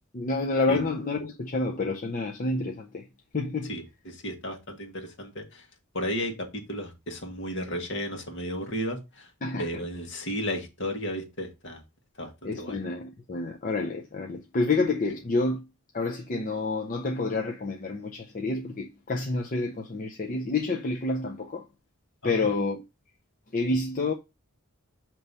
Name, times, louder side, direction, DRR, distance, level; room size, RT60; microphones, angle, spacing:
voice 1, 0.1-3.0 3.3-3.8 9.4-9.8 12.4-15.6 15.9-21.6 22.2-22.8 23.5-24.1, left 3 dB, 35° left, 0.6 m, -28 dB
voice 2, 3.7-5.6 5.9-9.3 9.6-11.8 12.2-12.8 22.2-22.5, equal, 55° left, 1.6 m, -34 dB
6.5 x 3.0 x 5.4 m
head